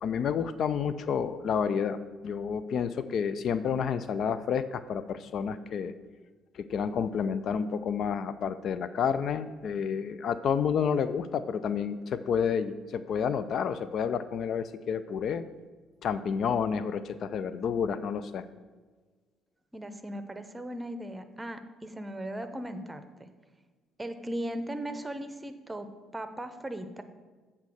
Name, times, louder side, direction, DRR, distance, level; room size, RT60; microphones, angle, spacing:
voice 1, 0.0-5.9 6.5-15.4 16.0-18.4, left 7 dB, 55° left, 13 dB, 0.3 m, -30 dB
voice 2, 19.7-23.3 24.0-25.9 26.1-27.0, right 1 dB, 15° right, 9 dB, 0.8 m, -37 dB
8.1 x 4.3 x 6.4 m, 1.4 s
hypercardioid pair, 50°, 0 cm